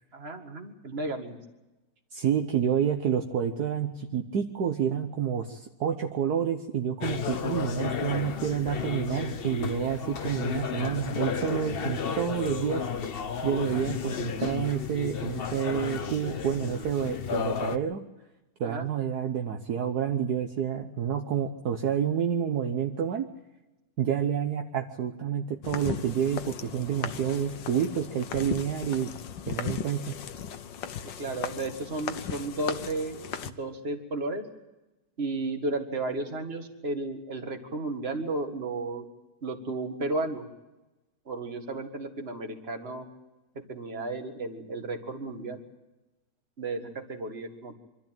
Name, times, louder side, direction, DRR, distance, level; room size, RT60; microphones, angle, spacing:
voice 1, 0.1-1.4 18.6-18.9 31.2-34.5 35.2-39.1 39.4-40.5 41.3-43.1 43.7-45.6 46.6-47.8, right 2 dB, 35° right, 6 dB, 2.0 m, -33 dB
voice 2, 2.1-12.9 13.4-18.0 18.6-23.3 24.0-29.1 29.5-30.1, right 8 dB, 65° right, 5 dB, 1.5 m, -29 dB
sound 1, 7.0-17.8, left 7 dB, 45° left, 0.8 m, -33 dB
sound 2, 25.6-33.5, left 8 dB, 85° left, 1.6 m, -37 dB
25.0 x 13.5 x 9.0 m, 1.0 s
omnidirectional pair, 1.9 m